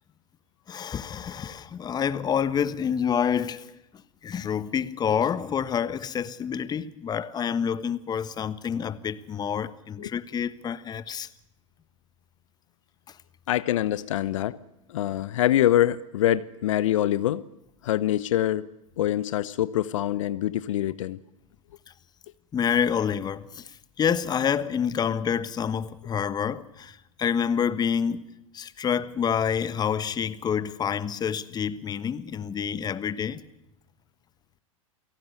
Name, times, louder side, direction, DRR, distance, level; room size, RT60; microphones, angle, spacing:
voice 1, 0.7-3.7 4.2-11.3 22.5-33.4, left 7 dB, 25° left, 1.4 m, -28 dB
voice 2, 13.5-14.6 14.9-17.4 17.8-18.7 19.0-21.2, left 12 dB, 65° left, 1.0 m, -24 dB
29.0 x 18.0 x 8.1 m
hypercardioid pair, 100°, 18 cm